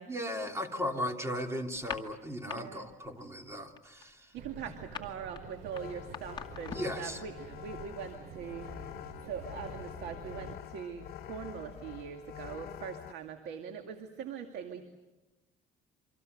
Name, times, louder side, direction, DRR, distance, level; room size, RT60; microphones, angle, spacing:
voice 1, 0.1-4.3 6.7-7.2, equal, 15° right, 4 dB, 3.0 m, -36 dB
sound 1, 1.8-2.6 2.9-3.2 3.5-7.0, left 6 dB, 25° left, 2.2 m, -43 dB
voice 2, 2.4-2.9 4.3-9.0 9.2-14.9, right 7 dB, 80° right, 6 dB, 2.3 m, -42 dB
sound 2, 4.3-10.5, right 6 dB, 60° right, 2.7 m, -50 dB
sound 3, 5.7-13.1, left 12 dB, 65° left, 0.9 m, -46 dB
28.0 x 25.5 x 6.7 m, 1.1 s
cardioid pair, 110°, 17 cm